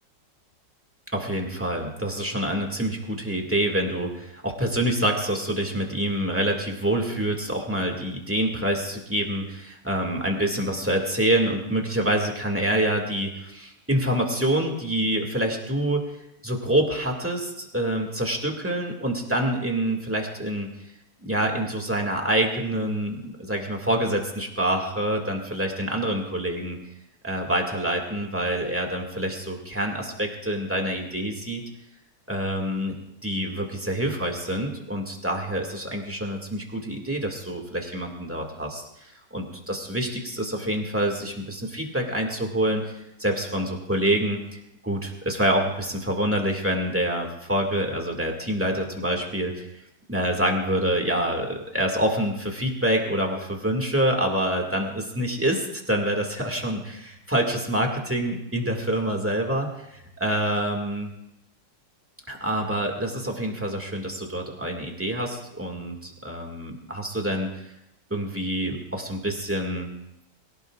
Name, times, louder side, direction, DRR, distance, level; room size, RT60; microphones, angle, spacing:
voice 1, 1.1-16.0 16.4-20.7 21.2-26.8 27.2-31.6 32.3-32.9 33.2-38.8 39.3-42.8 43.2-49.7 50.1-61.1 62.3-67.5 68.1-69.9, right 1 dB, 5° right, 1 dB, 2.0 m, -26 dB
23.0 x 17.0 x 2.5 m, 0.85 s
omnidirectional pair, 1.9 m